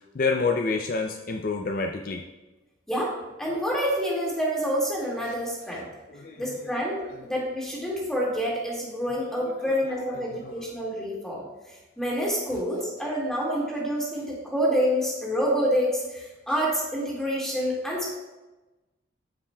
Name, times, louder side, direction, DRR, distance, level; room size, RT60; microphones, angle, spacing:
voice 1, 0.1-2.2 5.3-5.4 6.1-6.4 10.3-10.5, left 4 dB, 45° left, 3 dB, 0.4 m, -28 dB
voice 2, 3.4-5.9 6.4-18.1, equal, 5° left, -5 dB, 2.0 m, -27 dB
13.0 x 5.6 x 2.3 m, 1.1 s
head